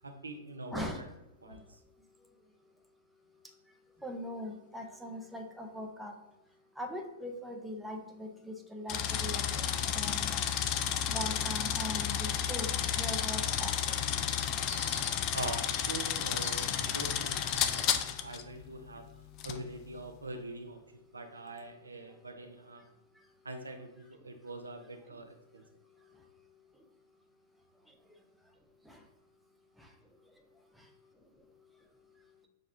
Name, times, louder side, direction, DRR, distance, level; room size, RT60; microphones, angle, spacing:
voice 1, 0.0-1.0 1.4-1.8 15.3-19.0 19.4-20.8 21.1-22.8 23.4-25.6, right 2 dB, 90° right, 5 dB, 0.5 m, -43 dB
voice 2, 4.0-6.2 6.8-10.5 11.1-14.0 17.8-18.1 28.9-29.0 29.8-29.9 30.8-30.9, left 1 dB, 5° right, 3 dB, 0.6 m, -41 dB
sound 1, 8.9-18.4 19.4-19.6, left 9 dB, 40° left, 0.3 m, -32 dB
sound 2, 14.2-15.4 15.8-18.1, left 4 dB, 55° left, 1.4 m, -44 dB
6.3 x 2.3 x 2.6 m, 0.93 s
figure-of-eight pair, 105°, 0 cm